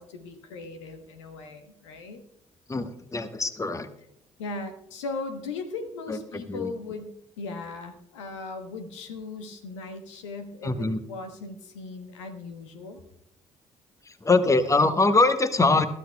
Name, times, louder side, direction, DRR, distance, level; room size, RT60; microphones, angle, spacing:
voice 1, 0.0-2.2 4.4-13.0, left 3 dB, 80° left, 7 dB, 1.1 m, -38 dB
voice 2, 2.7-3.9 6.1-6.2 6.5-6.7 10.6-11.0 14.1-15.9, left 3 dB, 20° left, 9 dB, 1.2 m, -23 dB
22.0 x 13.0 x 2.3 m, 0.79 s
figure-of-eight pair, 45°, 15 cm